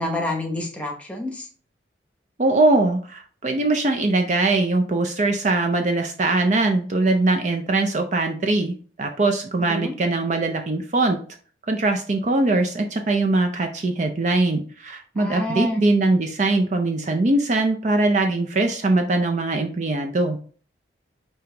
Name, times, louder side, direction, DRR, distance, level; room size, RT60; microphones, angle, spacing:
voice 1, 0.0-1.5 9.6-9.9 15.2-15.8, left 1 dB, 5° left, 1 dB, 0.9 m, -28 dB
voice 2, 2.4-11.2 11.7-20.4, right 2 dB, 40° right, 4 dB, 0.4 m, -21 dB
5.4 x 2.9 x 3.3 m, 0.42 s
head